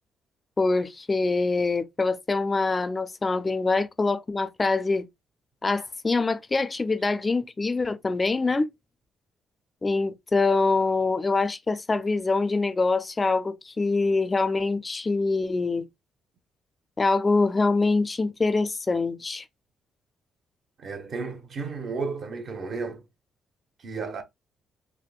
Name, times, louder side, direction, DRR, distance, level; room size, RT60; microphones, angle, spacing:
voice 1, 0.6-5.1 5.6-8.7 9.8-15.8 17.0-19.4, left 3 dB, 25° left, 0.4 m, -24 dB
voice 2, 20.8-23.0 23.8-24.2, right 4 dB, 55° right, 0.8 m, -33 dB
3.5 x 2.6 x 2.3 m
cardioid pair, 90°, 0 cm